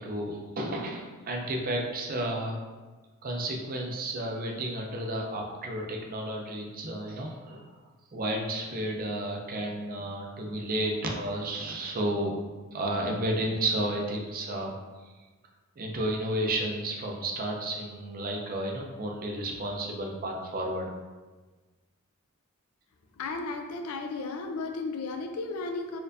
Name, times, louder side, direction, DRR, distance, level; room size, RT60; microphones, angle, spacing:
voice 1, 0.0-2.6 3.2-7.6 8.1-12.3 12.7-14.7 15.8-20.9, right 1 dB, 40° right, 1 dB, 0.5 m, -32 dB
voice 2, 23.2-26.0, left 3 dB, 80° left, 4 dB, 0.4 m, -34 dB
4.2 x 2.5 x 2.6 m, 1.3 s
head